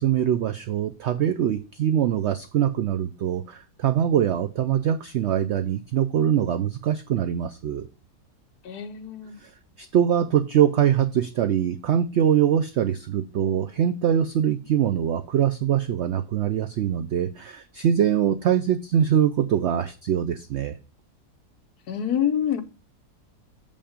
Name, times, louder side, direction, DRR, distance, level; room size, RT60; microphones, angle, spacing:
voice 1, 0.0-7.9 9.4-9.5 9.8-20.8, right 9 dB, 85° right, 0.6 m, -23 dB
voice 2, 8.6-9.4 21.9-22.6, left 9 dB, 70° left, 1.4 m, -26 dB
7.1 x 5.4 x 5.0 m
omnidirectional pair, 1.7 m